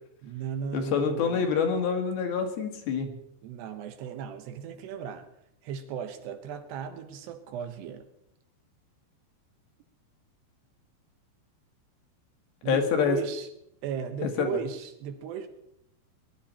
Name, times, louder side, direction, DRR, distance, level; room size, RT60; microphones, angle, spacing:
voice 1, 0.2-1.5 3.4-5.3 5.6-8.1 12.6-13.5 13.8-15.5, right 7 dB, 75° right, 7 dB, 3.2 m, -36 dB
voice 2, 0.7-3.1 12.7-13.2 14.4-14.6, left 6 dB, 65° left, 4 dB, 3.5 m, -26 dB
21.5 x 12.0 x 4.3 m, 0.78 s
omnidirectional pair, 5.0 m